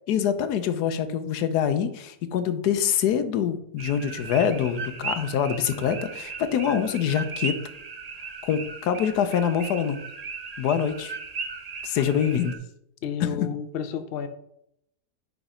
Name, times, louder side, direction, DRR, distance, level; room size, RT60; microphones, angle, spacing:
voice 1, 0.1-7.5 8.4-10.0 10.6-11.1 11.8-12.5 13.2-13.5, left 8 dB, 80° left, 10 dB, 1.2 m, -25 dB
sound 1, 3.8-12.6, right 4 dB, 70° right, 0.3 m, -37 dB
voice 2, 12.0-12.5 13.0-14.3, left 7 dB, 55° left, 8 dB, 0.7 m, -32 dB
5.2 x 5.1 x 4.9 m, 0.74 s
omnidirectional pair, 1.7 m